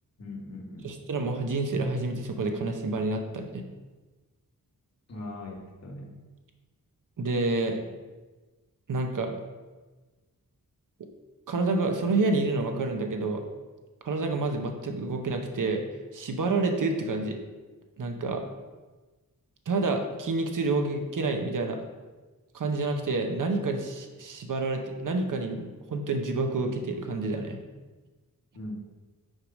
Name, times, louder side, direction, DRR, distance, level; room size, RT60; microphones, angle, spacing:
voice 1, 0.2-1.0 5.1-6.1 28.5-28.8, left 2 dB, 45° left, 0 dB, 1.4 m, -40 dB
voice 2, 0.8-3.6 7.2-7.8 8.9-9.3 11.5-13.4 14.0-15.8 16.1-17.4 18.0-18.4 19.7-21.8 22.5-27.6, right 3 dB, 60° right, 4 dB, 0.9 m, -28 dB
6.3 x 4.9 x 5.2 m, 1.2 s
wide cardioid pair, 145°, 35 cm